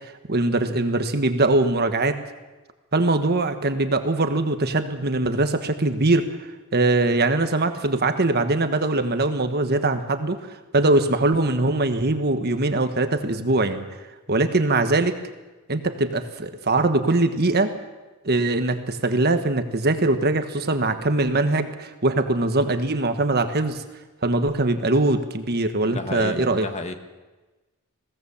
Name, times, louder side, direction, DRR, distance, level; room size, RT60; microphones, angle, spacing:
voice 1, 0.0-2.2 2.9-6.3 6.7-10.4 10.7-13.9 14.3-15.1 15.7-17.7 18.2-23.8 24.2-26.7, right 2 dB, 45° right, 8 dB, 1.4 m, -22 dB
voice 2, 25.9-26.9, left 2 dB, 30° left, 7 dB, 1.5 m, -32 dB
21.5 x 17.0 x 7.2 m, 1.2 s
head